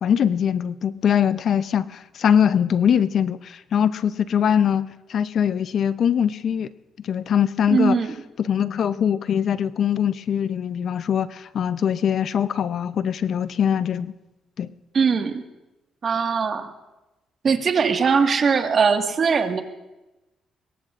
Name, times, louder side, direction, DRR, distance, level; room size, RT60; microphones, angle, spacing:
voice 1, 0.0-6.7 7.0-7.9 8.4-14.1 14.6-14.7, left 8 dB, 60° left, 14 dB, 0.6 m, -22 dB
voice 2, 7.7-8.1 14.9-15.4 16.0-16.7 17.4-19.6, right 5 dB, 50° right, 5 dB, 1.7 m, -20 dB
24.5 x 22.0 x 2.5 m, 1.0 s
cardioid pair, 90°, 0 cm